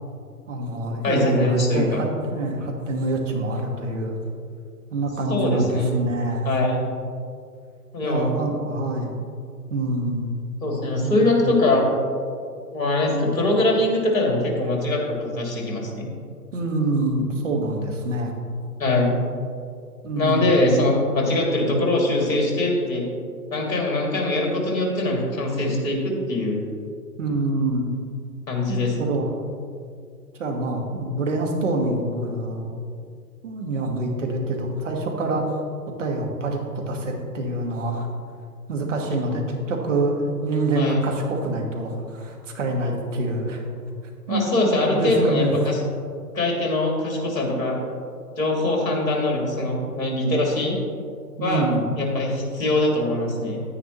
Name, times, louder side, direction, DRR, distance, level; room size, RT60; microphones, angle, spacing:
voice 1, 0.5-4.2 4.9-6.5 8.0-9.1 9.7-10.3 11.0-11.2 16.5-18.3 20.0-20.5 27.2-27.9 28.7-29.3 30.4-32.7 33.4-35.5 36.0-38.1 38.7-43.6 44.3-44.5 44.9-45.5 51.4-51.9, right 2 dB, 45° right, 2 dB, 1.5 m, -26 dB
voice 2, 1.0-2.0 5.3-5.9 6.4-6.8 7.9-8.4 10.6-11.9 12.7-16.1 18.8-19.1 20.2-23.1 23.5-26.6 28.5-29.1 39.1-39.2 40.8-41.1 44.3-45.8 46.3-47.8 48.4-50.7 51.4-51.7 52.0-53.6, left 2 dB, 55° left, -1 dB, 2.5 m, -22 dB
9.8 x 9.5 x 3.0 m, 2.3 s
figure-of-eight pair, 135°, 50 cm